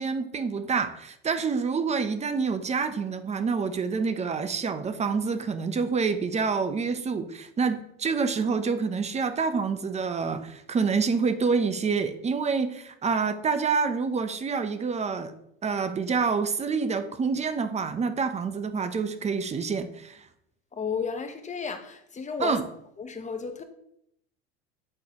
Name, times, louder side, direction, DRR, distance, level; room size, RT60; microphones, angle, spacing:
voice 1, 0.0-15.3 15.6-20.3 22.4-22.6, right 5 dB, 20° right, 0.6 m, -27 dB
voice 2, 20.7-22.6 23.0-23.6, left 5 dB, 20° left, 0.9 m, -33 dB
8.7 x 3.8 x 2.9 m
hypercardioid pair, 95°, 35 cm